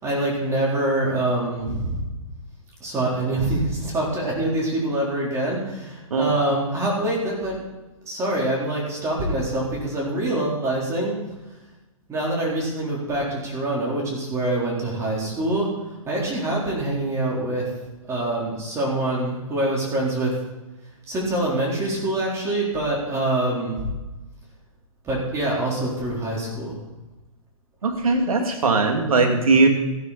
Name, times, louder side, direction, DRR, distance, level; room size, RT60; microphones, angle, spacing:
voice 1, 0.0-2.0 2.8-7.6 8.1-11.1 12.1-15.7 16.1-17.7 18.0-20.3 21.1-23.9 25.0-26.8, right 1 dB, 15° right, -3 dB, 4.0 m, -25 dB
voice 2, 27.8-29.7, right 3 dB, 80° right, 3 dB, 2.8 m, -19 dB
14.0 x 12.0 x 4.3 m, 1.1 s
hypercardioid pair, 140°, 18 cm